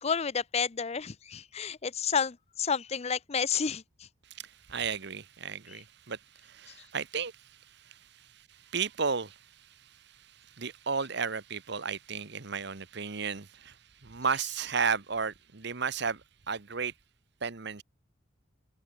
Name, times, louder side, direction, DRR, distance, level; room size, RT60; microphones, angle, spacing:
voice 1, 0.0-3.8, left 6 dB, 30° left, 0.5 m, -30 dB
voice 2, 4.3-9.5 9.8-9.9 10.3-13.8 14.0-16.2 16.5-16.9 17.4-17.8, right 5 dB, 55° right, 1.2 m, -34 dB
open air
head